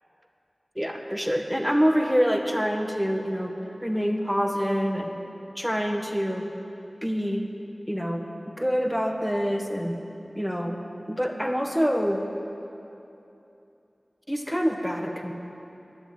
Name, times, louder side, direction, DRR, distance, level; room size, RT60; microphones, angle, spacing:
voice 1, 0.7-3.5 3.8-5.1 5.5-6.5 7.0-7.4 7.9-8.2 8.6-10.0 10.3-10.8 11.1-12.2 14.3-15.3, equal, ahead, 3 dB, 1.5 m, -26 dB
12.0 x 10.0 x 9.6 m, 2.8 s
wide cardioid pair, 55°, 0 cm